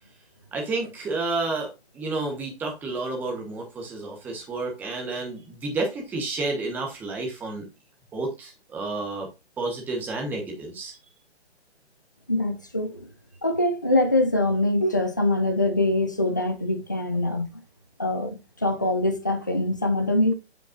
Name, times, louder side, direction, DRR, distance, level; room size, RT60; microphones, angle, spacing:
voice 1, 0.5-7.6 8.1-9.3 9.6-11.0, right 3 dB, 5° right, 0.9 m, -30 dB
voice 2, 12.3-13.1 13.4-17.6 18.0-20.3, left 1 dB, 20° left, 0.3 m, -24 dB
8.0 x 5.4 x 2.3 m
hypercardioid pair, 155°, 33 cm